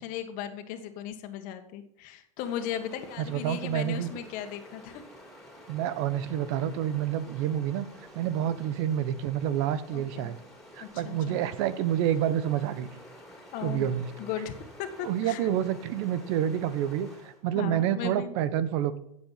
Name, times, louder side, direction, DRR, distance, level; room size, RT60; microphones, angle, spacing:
voice 1, 0.0-5.0 9.9-10.3 10.8-11.4 13.5-13.9 14.2-14.5 14.8-15.5 17.5-18.3, left 10 dB, 50° left, 7 dB, 1.8 m, -37 dB
Stream, 2.4-17.4, left 1 dB, 5° left, 4.5 m, -50 dB
voice 2, 3.2-4.1 5.7-7.9 8.1-10.4 10.7-12.9 13.6-14.1 15.0-19.0, right 10 dB, 60° right, 15 dB, 1.1 m, -28 dB
15.5 x 7.7 x 5.8 m, 0.75 s
hypercardioid pair, 110°, 17 cm